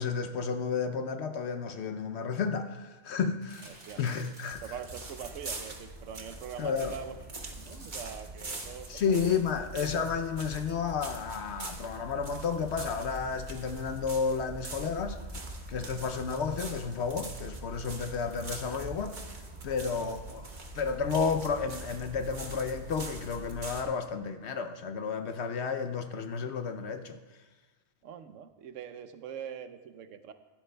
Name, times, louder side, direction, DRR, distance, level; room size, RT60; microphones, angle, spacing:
voice 1, 0.0-4.6 6.6-6.9 8.9-15.2 15.7-19.2 19.6-20.4 20.7-27.2, left 5 dB, 70° left, 8 dB, 0.9 m, -32 dB
sound 1, 3.4-5.5 7.4-10.3 10.7-10.8 11.2-11.3 11.6-11.7 12.3-14.8 15.6-17.4 18.2-23.3, right 1 dB, 65° right, 2.8 m, -57 dB
voice 2, 3.7-4.0 4.6-9.4 20.0-20.2 28.0-30.3, right 8 dB, 85° right, 10 dB, 1.0 m, -43 dB
sound 2, 4.5-23.8, right 2 dB, 40° right, 1.2 m, -43 dB
15.5 x 12.0 x 2.2 m, 1.3 s
omnidirectional pair, 1.3 m